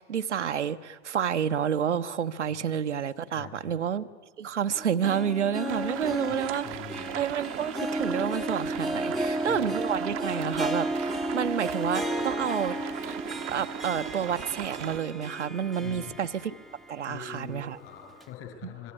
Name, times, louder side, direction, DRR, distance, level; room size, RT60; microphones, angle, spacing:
voice 1, 0.0-4.1 4.4-13.1 13.5-16.5 16.9-17.8 18.6-18.7, right 8 dB, 80° right, 8 dB, 1.0 m, -30 dB
voice 2, 3.3-3.8 6.1-6.2 6.6-7.2 9.0-9.6 15.8-16.2 17.1-18.9, left 8 dB, 40° left, 4 dB, 7.2 m, -44 dB
Harp, 4.8-16.9 17.3-17.4 18.2-18.3, right 1 dB, ahead, 1.1 m, -33 dB
sound 1, 5.7-15.0, right 16 dB, 35° right, 0.9 m, -39 dB
26.0 x 23.0 x 9.9 m, 1.4 s
figure-of-eight pair, 90°, 35 cm